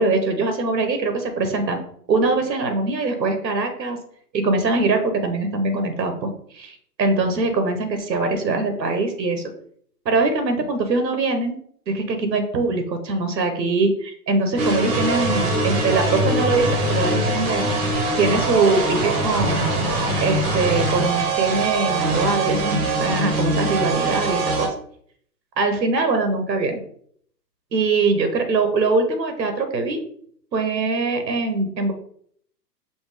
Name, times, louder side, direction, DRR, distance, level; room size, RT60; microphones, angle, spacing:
voice 1, 0.0-1.8 2.1-4.0 4.3-9.4 10.0-11.6 11.9-17.7 18.2-19.7 20.2-24.7 25.6-26.8 27.7-30.0 30.5-31.9, right 3 dB, 85° right, 6 dB, 1.1 m, -22 dB
sound 1, 14.6-24.7, right 2 dB, 25° right, 1.0 m, -22 dB
5.4 x 2.6 x 3.4 m, 0.63 s
hypercardioid pair, 125°, 50 cm